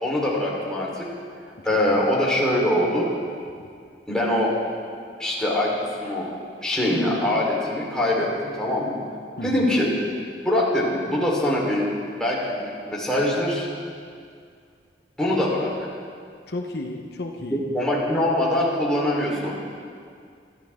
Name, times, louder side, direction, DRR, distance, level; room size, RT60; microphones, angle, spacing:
voice 1, 0.0-1.1 1.6-3.1 4.1-4.5 5.2-5.7 6.0-6.3 6.6-9.0 9.4-9.9 10.4-11.8 12.2-13.7 15.2-15.7 17.5-19.5, left 1 dB, 5° left, -5 dB, 3.8 m, -23 dB
voice 2, 1.6-2.1 9.4-9.7 16.5-17.6, left 2 dB, 65° left, 2 dB, 1.0 m, -33 dB
22.5 x 14.5 x 3.6 m, 2.2 s
head